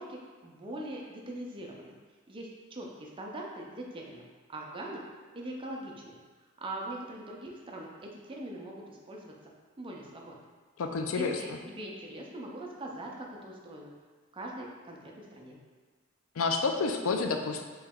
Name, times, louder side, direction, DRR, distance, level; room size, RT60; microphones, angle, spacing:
voice 1, 0.0-1.9 2.3-4.2 4.5-5.0 5.3-6.2 6.6-9.3 9.8-10.3 11.1-13.9 14.3-15.6, right 1 dB, 25° right, -1 dB, 0.5 m, -42 dB
voice 2, 10.8-11.4 16.4-17.6, left 4 dB, 90° left, 4 dB, 0.4 m, -29 dB
3.1 x 2.9 x 3.5 m, 1.4 s
head